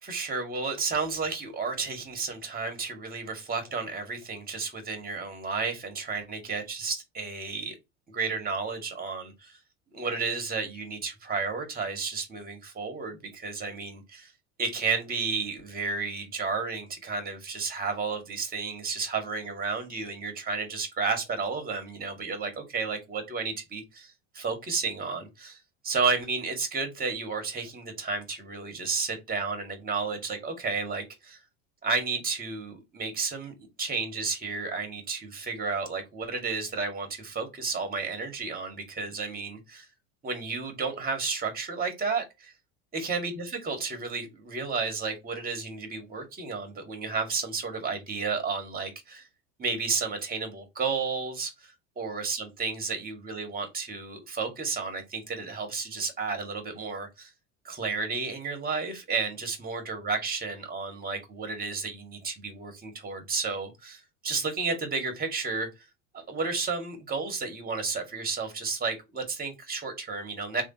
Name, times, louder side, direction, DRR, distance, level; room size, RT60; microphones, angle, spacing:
voice 1, 0.0-7.7 8.1-9.6 9.9-14.3 14.6-25.6 25.8-31.4 31.8-39.9 40.2-42.5 42.9-49.3 49.6-57.3 57.6-65.7 66.1-70.6, right 4 dB, 25° right, 2.0 m, -32 dB
3.5 x 3.3 x 4.1 m
supercardioid pair, 105°, 37 cm